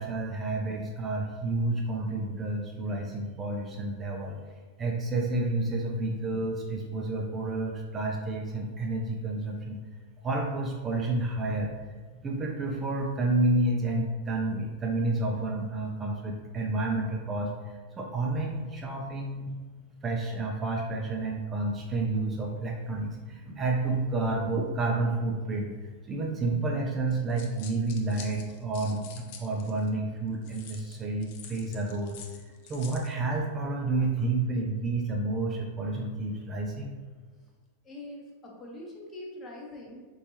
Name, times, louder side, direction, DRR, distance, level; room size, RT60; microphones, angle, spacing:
voice 1, 0.0-4.4 4.8-9.8 10.2-11.7 12.2-19.5 20.0-32.2 32.4-36.9, right 2 dB, 20° right, 0 dB, 0.4 m, -30 dB
sound 1, 27.1-29.9 30.4-33.1, left 7 dB, 45° left, 0.4 m, -47 dB
voice 2, 37.8-40.1, left 1 dB, 20° left, -2 dB, 0.9 m, -43 dB
4.3 x 2.7 x 2.8 m, 1.4 s
figure-of-eight pair, 90°, 0 cm